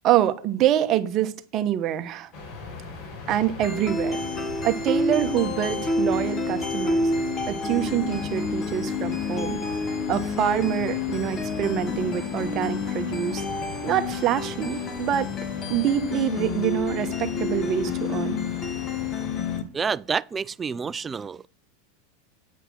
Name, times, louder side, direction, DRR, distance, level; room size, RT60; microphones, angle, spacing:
voice 1, 0.0-2.3 3.3-4.2 4.6-7.1 7.5-9.6 10.1-13.4 13.8-15.3 15.7-18.4, right 11 dB, 35° right, 1.1 m, -25 dB
sound 1, 2.3-19.6, left 3 dB, 50° left, 4.0 m, -39 dB
sound 2, 3.6-19.6, left 3 dB, 25° left, 1.4 m, -29 dB
voice 2, 19.7-21.4, right 6 dB, 20° right, 0.3 m, -28 dB
9.4 x 5.8 x 6.3 m
supercardioid pair, 130°, 0 cm